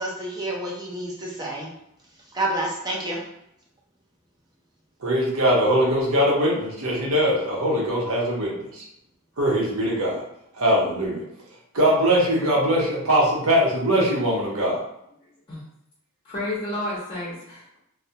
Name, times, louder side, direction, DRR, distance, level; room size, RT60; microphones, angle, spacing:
voice 1, 0.0-1.7 2.3-3.2, right 1 dB, 20° right, -2 dB, 0.5 m, -29 dB
voice 2, 5.0-8.8 9.4-10.2 10.6-11.2 11.7-14.8, equal, 70° right, -3 dB, 0.8 m, -21 dB
voice 3, 16.2-17.8, left 1 dB, 25° left, -7 dB, 0.7 m, -31 dB
2.3 x 2.1 x 2.7 m, 0.78 s
head